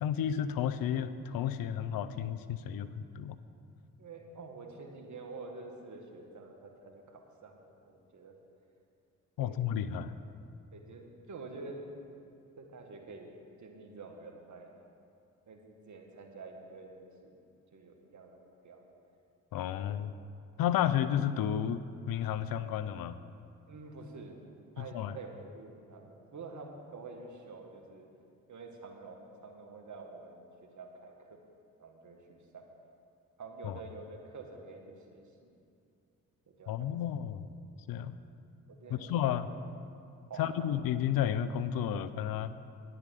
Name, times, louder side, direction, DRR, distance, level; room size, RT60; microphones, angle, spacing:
voice 1, 0.0-3.4 9.4-10.2 19.5-20.1 20.6-23.2 24.8-25.2 33.6-33.8 36.7-37.5 37.9-38.2 38.9-39.5 40.4-42.5, left 10 dB, 70° left, 13 dB, 0.6 m, -32 dB
voice 2, 4.0-8.3 9.4-9.6 10.7-11.8 12.6-13.3 13.6-14.7 15.5-17.4 17.7-18.8 19.6-19.8 23.7-24.4 24.8-28.1 28.5-31.4 31.8-32.6 33.4-35.2 36.5-37.0 38.7-39.4 40.3-40.8, right 3 dB, 55° right, 3 dB, 1.9 m, -48 dB
10.5 x 8.7 x 6.6 m, 2.6 s
hypercardioid pair, 45°, 36 cm